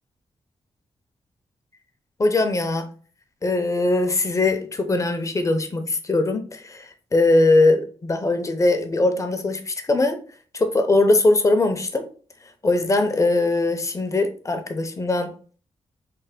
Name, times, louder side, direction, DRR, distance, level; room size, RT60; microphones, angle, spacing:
voice 1, 2.2-2.9 3.4-10.2 10.5-12.0 12.6-15.3, left 2 dB, 30° left, 7 dB, 0.5 m, -21 dB
3.3 x 2.1 x 3.5 m, 0.41 s
cardioid pair, 80°, 11 cm